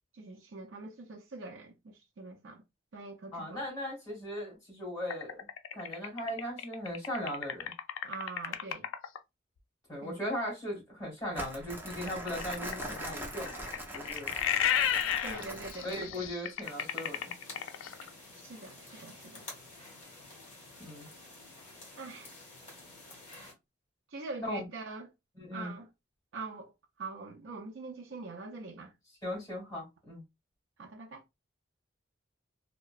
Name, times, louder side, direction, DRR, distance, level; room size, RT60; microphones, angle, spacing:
voice 1, 0.1-2.6 2.9-3.6 8.0-8.9 10.0-10.2 15.2-16.3 18.3-19.5 22.0-22.3 24.1-25.1 25.5-25.9 26.3-28.9 30.8-31.2, right 3 dB, 75° right, 0.5 m, -44 dB
voice 2, 3.3-5.5 5.7-7.7 9.9-13.7 13.9-14.3 15.8-17.3 20.8-21.1 24.5-24.7 25.4-25.7 29.2-30.2, equal, 15° left, 1.8 m, -38 dB
sound 1, 5.1-9.2 12.0-18.1, left 9 dB, 85° left, 0.3 m, -33 dB
Crumpling crinkling, 11.3-16.2, right 1 dB, 10° right, 0.5 m, -42 dB
sound 2, 16.6-23.5, left 2 dB, 40° left, 1.6 m, -50 dB
2.8 x 2.2 x 2.4 m
head